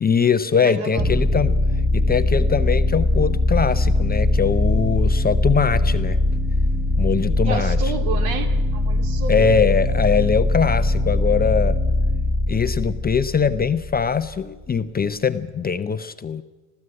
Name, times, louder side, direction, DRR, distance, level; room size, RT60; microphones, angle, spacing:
voice 1, 0.0-1.6 1.9-6.2 7.0-7.8 9.3-11.8 12.5-16.4, left 6 dB, 20° left, 11 dB, 0.7 m, -21 dB
voice 2, 0.6-1.0 7.5-8.5 8.7-9.5, right 5 dB, 65° right, 7 dB, 2.7 m, -30 dB
sound 1, 1.0-14.4, left 1 dB, 10° right, 1.6 m, -21 dB
20.0 x 15.0 x 8.8 m, 1.2 s
hypercardioid pair, 75°, 48 cm